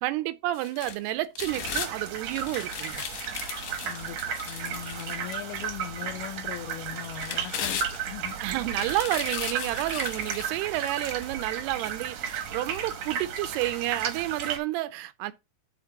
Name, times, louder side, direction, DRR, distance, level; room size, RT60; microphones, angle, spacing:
voice 1, 0.0-3.0 8.4-15.3, right 16 dB, 85° right, 2.6 m, -30 dB
sound 1, 0.5-1.9 2.3-5.7 6.2-6.3 7.0-8.3 8.7-11.3 11.9-12.0, left 9 dB, 65° left, 2.5 m, -37 dB
sound 2, 1.5-14.6, right 7 dB, 70° right, 1.6 m, -34 dB
voice 2, 3.8-8.7, left 13 dB, 80° left, 2.4 m, -40 dB
10.5 x 4.3 x 4.0 m
omnidirectional pair, 4.7 m